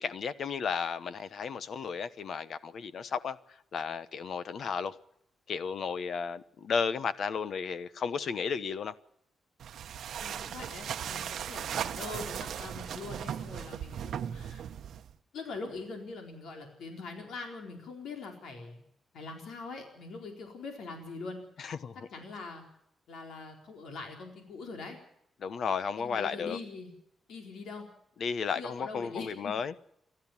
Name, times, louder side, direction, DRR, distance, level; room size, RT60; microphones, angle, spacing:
voice 1, 0.0-3.4 3.7-4.9 5.5-8.9 21.6-22.0 25.4-26.6 28.2-29.7, left 6 dB, 60° left, 1.1 m, -33 dB
sound 1, 9.6-15.2, right 9 dB, 75° right, 0.8 m, -37 dB
voice 2, 10.2-14.6 15.3-18.8 19.1-21.6 22.1-22.6 23.1-25.0 26.0-26.9 27.3-27.9 28.6-29.5, left 3 dB, 90° left, 4.3 m, -43 dB
29.5 x 13.0 x 7.3 m
wide cardioid pair, 145°, 0 cm